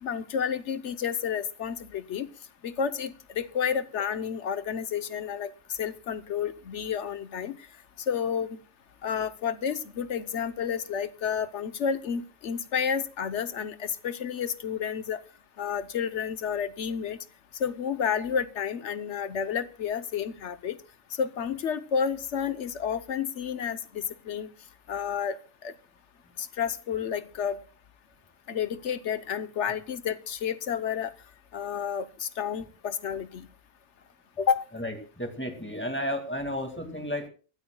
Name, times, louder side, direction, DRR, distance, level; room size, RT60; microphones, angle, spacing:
voice 1, 0.0-2.3 2.6-7.6 8.1-8.6 9.0-15.2 15.6-17.2 17.6-20.8 21.1-24.5 24.9-25.4 25.6-25.7 26.4-27.6 28.5-31.1 31.5-33.5 34.4-34.6, left 7 dB, 75° left, 13 dB, 1.2 m, -30 dB
voice 2, 34.7-37.3, equal, 10° left, 4 dB, 2.1 m, -33 dB
25.0 x 13.0 x 2.2 m, 0.36 s
omnidirectional pair, 1.2 m